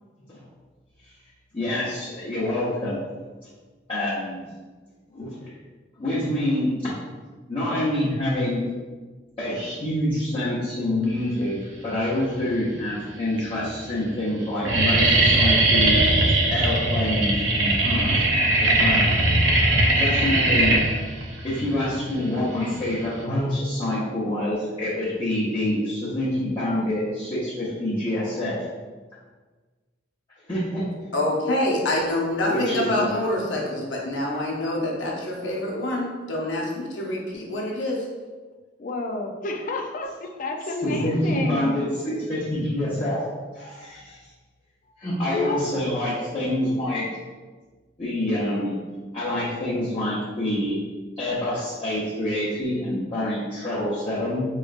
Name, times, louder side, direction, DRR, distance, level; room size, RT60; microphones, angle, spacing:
voice 1, 1.5-3.0 3.9-4.4 5.1-5.5 6.0-6.9 7.5-8.7 9.4-11.6 11.8-16.1 16.5-18.3 18.6-19.1 20.0-20.8 21.4-28.6 30.5-30.8 32.5-33.1 40.8-43.2 43.5-44.2 45.0-47.1 48.0-48.7 49.1-50.8 51.2-54.4, left 1 dB, 30° left, -11 dB, 0.9 m, -26 dB
sound 1, 12.1-12.6 13.3-13.4 13.7-14.0 14.3-23.2, right 2 dB, 85° right, 0.6 m, -20 dB
voice 2, 31.1-38.1, left 1 dB, 80° left, -2 dB, 0.8 m, -26 dB
voice 3, 38.8-41.8 45.2-45.8, left 2 dB, 45° left, 3 dB, 0.4 m, -30 dB
4.4 x 3.2 x 2.5 m, 1.4 s
head